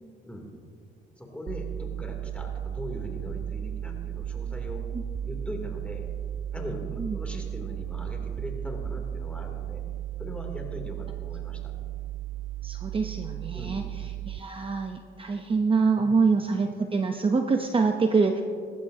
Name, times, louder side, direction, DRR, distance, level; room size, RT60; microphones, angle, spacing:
voice 1, 1.2-4.8 5.2-6.1 6.5-9.8 10.2-11.7 13.5-13.7, equal, 5° left, 0 dB, 3.0 m, -40 dB
sound 1, 1.5-14.4, right 10 dB, 45° right, 0.4 m, -35 dB
voice 2, 12.6-18.4, right 4 dB, 25° right, 5 dB, 0.8 m, -25 dB
19.0 x 15.0 x 2.8 m, 2.4 s
cardioid pair, 90°, 20 cm